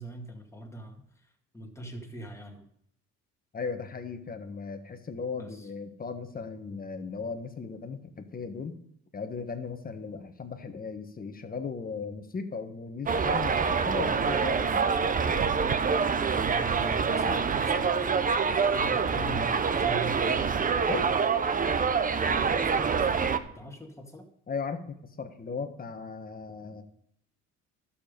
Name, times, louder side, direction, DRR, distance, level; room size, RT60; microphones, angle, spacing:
voice 1, 0.0-2.7 5.4-5.7 16.3-18.3 18.7-20.5 22.3-23.1 23.5-24.3, right 1 dB, 10° left, 2 dB, 2.0 m, -42 dB
voice 2, 3.5-8.8 9.1-14.9 20.9-21.1 24.5-26.8, left 5 dB, 30° left, 8 dB, 1.3 m, -37 dB
Subway metro underground, 13.1-23.4, right 5 dB, 25° right, 0.7 m, -26 dB
12.0 x 7.1 x 5.2 m, 0.71 s
cardioid pair, 105°, 30 cm